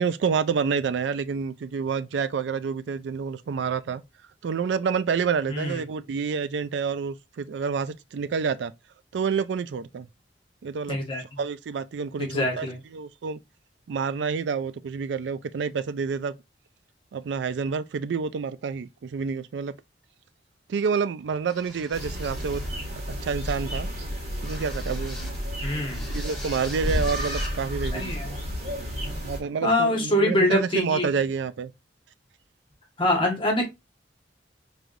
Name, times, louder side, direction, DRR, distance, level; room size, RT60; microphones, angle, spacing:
voice 1, 0.0-4.0 4.4-8.7 9.1-10.1 10.6-11.0 11.4-12.7 12.9-13.4 13.9-16.3 17.1-19.7 20.7-22.6 22.9-23.9 24.4-25.2 26.1-28.4 29.2-31.7, right 6 dB, 75° right, 0.3 m, -28 dB
voice 2, 5.5-5.8 10.9-11.2 12.2-12.8 25.6-26.0 27.9-28.4 29.6-31.1 33.0-33.7, left 1 dB, 30° left, 1.4 m, -24 dB
sound 1, 21.5-22.8 23.4-23.8 24.4-25.4 25.9-27.6, left 1 dB, ahead, 2.6 m, -43 dB
sound 2, 21.9-29.4, equal, 40° right, 1.9 m, -31 dB
4.7 x 3.2 x 2.5 m
head